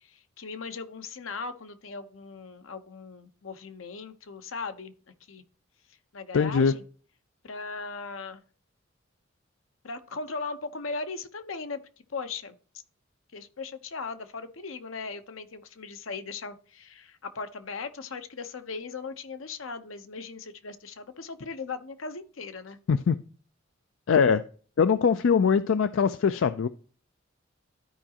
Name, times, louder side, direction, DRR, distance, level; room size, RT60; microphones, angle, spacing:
voice 1, 0.0-4.9 5.3-5.4 6.1-6.8 7.4-8.4 9.8-11.8 12.1-12.6 13.3-22.8, left 4 dB, 85° left, 9 dB, 0.9 m, -38 dB
voice 2, 6.3-6.7 22.9-23.2 24.1-24.4 24.8-26.7, left 6 dB, 70° left, 12 dB, 0.4 m, -22 dB
13.0 x 4.9 x 2.9 m, 0.42 s
head